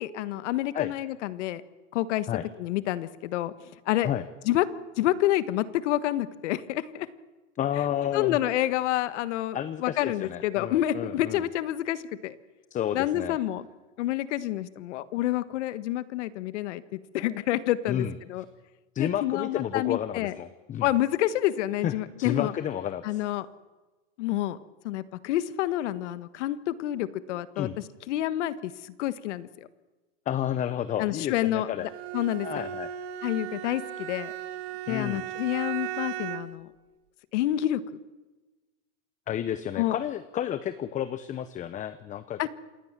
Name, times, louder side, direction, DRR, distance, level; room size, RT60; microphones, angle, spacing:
voice 1, 0.0-1.6 1.9-2.3 2.6-3.5 3.8-4.1 4.4-4.7 5.0-7.1 8.1-12.3 12.9-13.6 14.0-18.4 19.0-20.3 20.8-22.5 23.0-23.5 24.2-24.6 24.8-27.7 28.1-29.7 31.0-32.7 33.2-34.3 34.9-36.7 37.3-38.0 39.8-40.0 42.4-42.5, left 14 dB, 65° left, 14 dB, 1.5 m, -28 dB
voice 2, 7.6-8.4 9.5-11.4 12.7-13.4 17.9-18.1 18.9-20.9 21.8-23.2 27.6-27.8 30.3-31.9 32.4-33.0 34.9-35.3 39.3-42.4, left 10 dB, 20° left, 14 dB, 0.8 m, -31 dB
Bowed string instrument, 31.7-36.6, right 11 dB, 55° right, 2.1 m, -36 dB
27.5 x 19.0 x 7.5 m, 1.2 s
supercardioid pair, 145°, 38 cm